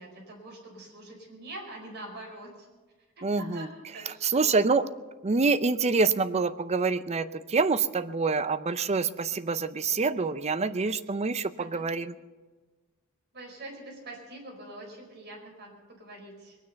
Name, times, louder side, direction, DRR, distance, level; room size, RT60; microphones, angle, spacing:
voice 1, 0.0-2.7 3.2-4.6 11.6-11.8 13.3-16.6, right 1 dB, 50° right, 0 dB, 4.8 m, -44 dB
voice 2, 3.2-3.7 4.1-4.8 5.2-12.1, right 4 dB, 30° right, 13 dB, 0.6 m, -26 dB
21.5 x 9.7 x 6.9 m, 1.3 s
head